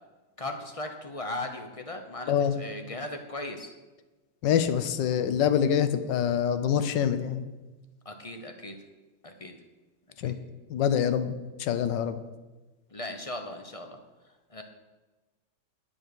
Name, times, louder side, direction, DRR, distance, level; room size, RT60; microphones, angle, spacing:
voice 1, 0.4-3.7 8.0-8.8 9.2-9.5 10.2-10.3 12.9-14.0 14.5-14.6, left 1 dB, 35° left, 5 dB, 0.5 m, -37 dB
voice 2, 2.3-2.6 4.4-7.5 10.2-10.4 10.7-11.3 11.6-12.2, left 8 dB, 70° left, 12 dB, 1.4 m, -25 dB
10.5 x 7.3 x 6.8 m, 1.2 s
omnidirectional pair, 2.1 m